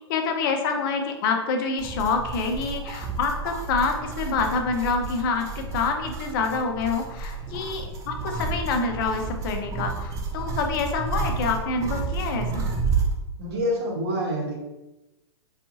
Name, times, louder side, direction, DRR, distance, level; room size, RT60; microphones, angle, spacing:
voice 1, 0.1-12.7, left 4 dB, 45° left, 4 dB, 0.5 m, -27 dB
sound 1, 1.8-13.2, right 4 dB, 20° right, 0.3 m, -31 dB
voice 2, 13.4-14.6, equal, 60° right, -1 dB, 0.9 m, -27 dB
2.6 x 2.3 x 2.6 m, 1.0 s
hypercardioid pair, 115°, 15 cm